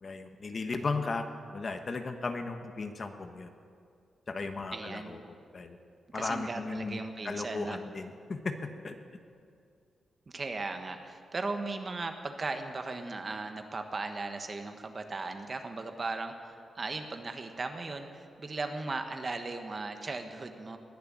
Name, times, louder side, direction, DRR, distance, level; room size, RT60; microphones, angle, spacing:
voice 1, 0.0-1.3 1.5-3.5 4.3-5.8 6.1-8.5 8.8-9.0, left 3 dB, 40° left, 6 dB, 1.2 m, -36 dB
voice 2, 4.7-5.2 6.1-7.8 10.3-16.3 16.7-20.8, right 3 dB, 35° right, 6 dB, 1.4 m, -37 dB
20.0 x 6.8 x 9.9 m, 2.3 s
cardioid pair, 100°, 0 cm